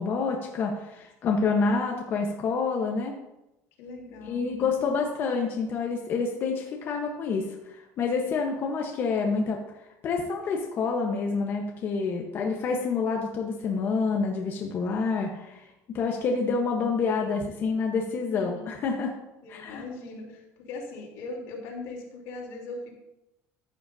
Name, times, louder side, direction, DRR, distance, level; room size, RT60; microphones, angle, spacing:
voice 1, 0.0-3.2 4.3-9.6 10.0-19.1 19.5-19.8, left 4 dB, 40° left, 1 dB, 1.0 m, -28 dB
voice 2, 1.2-1.7 3.8-5.0 18.3-18.6 19.4-22.9, left 3 dB, 85° left, -3 dB, 3.3 m, -40 dB
14.0 x 7.8 x 2.7 m, 0.91 s
cardioid pair, 160°, 6 cm